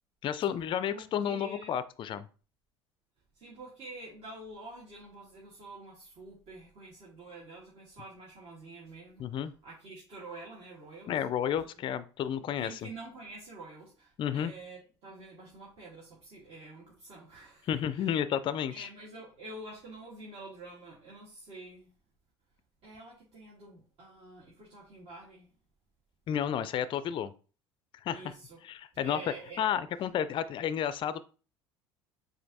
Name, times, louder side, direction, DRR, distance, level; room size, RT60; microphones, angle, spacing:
voice 1, 0.2-2.3 9.2-9.5 11.1-12.9 14.2-14.5 17.7-18.9 26.3-27.3 28.0-28.3 28.6-29.2 29.6-31.2, left 9 dB, 35° left, 0.4 m, -31 dB
voice 2, 0.9-1.8 3.3-9.3 9.6-11.1 11.6-11.8 12.6-18.2 18.7-21.9 22.8-25.5 28.1-28.6 28.9-29.7, right 2 dB, 45° right, 1.5 m, -48 dB
7.6 x 2.7 x 2.6 m
figure-of-eight pair, 65°, 14 cm